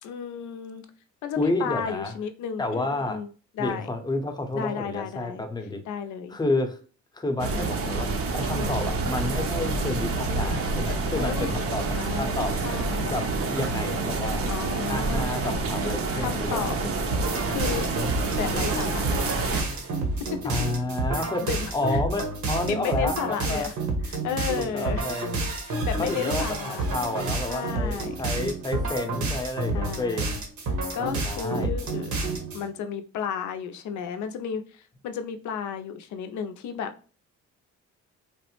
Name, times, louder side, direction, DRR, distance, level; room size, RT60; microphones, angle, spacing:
voice 1, 0.0-0.9 1.2-3.3 3.5-3.9 4.5-5.4 5.8-6.4 7.5-7.8 8.5-8.8 11.1-11.5 11.9-13.2 14.5-15.3 16.1-16.8 17.5-17.9 18.3-19.9 21.2-22.0 22.6-23.8 24.0-25.1 25.4-26.8 27.5-28.1 29.7-30.3 30.7-32.2 32.5-36.9, left 7 dB, 75° left, 8 dB, 0.5 m, -33 dB
voice 2, 1.4-2.1 2.6-3.2 3.6-5.8 6.3-6.8 7.1-11.8 12.2-12.5 13.1-13.2 13.5-14.4 14.9-16.9 20.4-23.7 24.6-25.3 26.0-30.4 31.2-31.7, left 2 dB, 15° left, 4 dB, 0.6 m, -30 dB
sound 1, 7.4-19.6, right 3 dB, 50° right, 0.6 m, -28 dB
sound 2, 17.1-32.6, right 2 dB, 70° right, 1.0 m, -29 dB
3.1 x 2.0 x 2.9 m, 0.38 s
cardioid pair, 90°, 30 cm